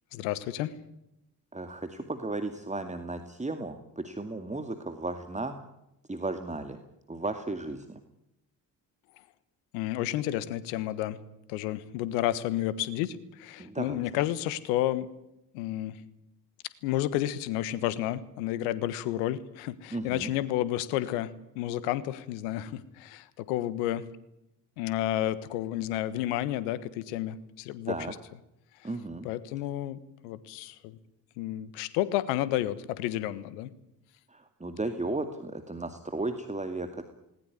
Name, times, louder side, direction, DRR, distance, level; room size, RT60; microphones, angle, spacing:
voice 1, 0.1-0.7 9.7-11.2 11.5-15.1 15.5-16.0 16.8-24.1 24.8-28.1 29.2-31.0 31.4-33.7, left 13 dB, 75° left, 17 dB, 1.4 m, -31 dB
voice 2, 1.5-5.6 6.1-6.8 7.1-8.0 13.6-14.0 19.9-20.3 27.9-28.1 28.8-29.3 34.3-37.0, right 2 dB, 15° right, 7 dB, 2.3 m, -35 dB
20.0 x 19.0 x 9.7 m, 0.85 s
figure-of-eight pair, 45°, 47 cm